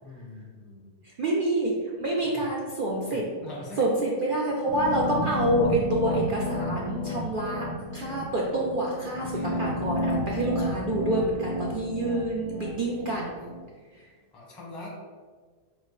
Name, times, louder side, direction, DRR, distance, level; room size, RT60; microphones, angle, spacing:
voice 1, 0.0-0.9 2.2-2.5 3.1-3.9 9.3-9.8 14.3-14.9, left 2 dB, ahead, -3 dB, 0.7 m, -43 dB
voice 2, 1.0-3.3 3.8-7.7 7.9-13.3, right 1 dB, 65° right, -3 dB, 0.5 m, -27 dB
sound 1, 4.7-13.6, left 1 dB, 40° left, 0.4 m, -31 dB
4.9 x 2.1 x 4.8 m, 1.5 s
omnidirectional pair, 1.6 m